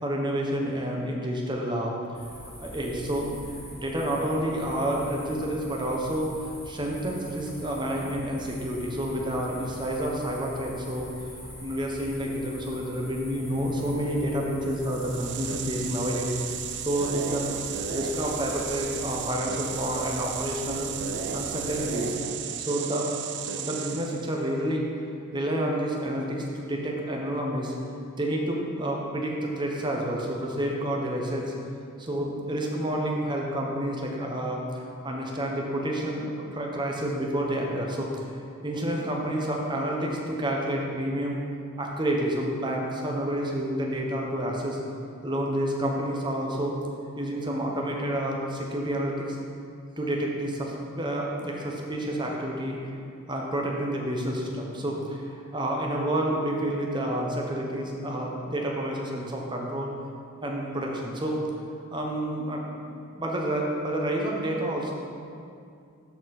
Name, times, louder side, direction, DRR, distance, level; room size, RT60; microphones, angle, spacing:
voice 1, 0.0-1.9 2.4-3.3 3.7-6.3 6.7-16.3 16.8-17.5 17.9-20.9 21.3-22.1 22.6-23.1 23.6-24.9 25.3-27.7 28.2-31.5 32.0-38.2 38.6-41.4 41.8-44.8 45.2-46.7 47.2-49.4 50.0-52.9 53.3-59.9 60.4-61.4 61.9-64.9, right 1 dB, 20° right, -1 dB, 1.0 m, -29 dB
sound 1, 2.1-22.1, equal, 10° left, 2.1 m, -43 dB
sound 2, 14.8-24.4, right 8 dB, 55° right, 0.4 m, -34 dB
12.5 x 4.4 x 4.2 m, 2.4 s
head